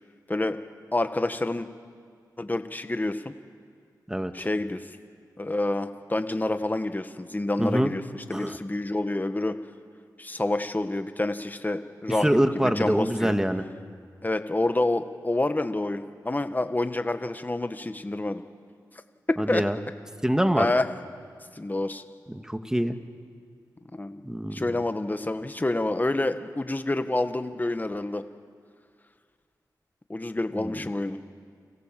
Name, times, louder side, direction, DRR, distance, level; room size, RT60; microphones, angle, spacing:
voice 1, 0.9-1.7 2.4-3.3 4.3-4.9 5.4-9.5 10.2-13.3 14.2-18.4 19.5-19.6 20.6-20.9 21.5-22.0 23.9-24.2 24.5-28.2 30.1-31.2, left 2 dB, 25° left, 8 dB, 1.6 m, -28 dB
voice 2, 7.6-7.9 8.3-8.6 12.2-13.6 19.4-19.8 20.2-20.7 22.3-23.0 24.2-24.6 30.6-30.7, equal, 10° right, 7 dB, 2.1 m, -25 dB
30.0 x 25.0 x 7.7 m, 2.1 s
cardioid pair, 45°, 7 cm